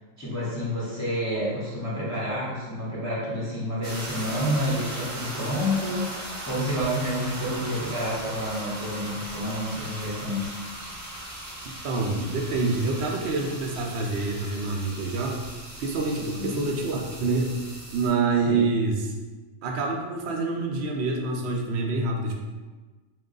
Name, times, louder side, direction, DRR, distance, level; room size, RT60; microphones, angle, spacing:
voice 1, 0.2-10.5 16.2-16.6 18.5-18.6, equal, 20° left, -8 dB, 0.5 m, -29 dB
sound 1, 3.8-18.1, right 1 dB, 35° right, 0.7 m, -38 dB
voice 2, 11.8-15.4 15.8-17.5 17.9-19.1 19.6-22.3, right 3 dB, 65° right, 1 dB, 0.8 m, -26 dB
3.1 x 2.3 x 3.8 m, 1.3 s
omnidirectional pair, 1.3 m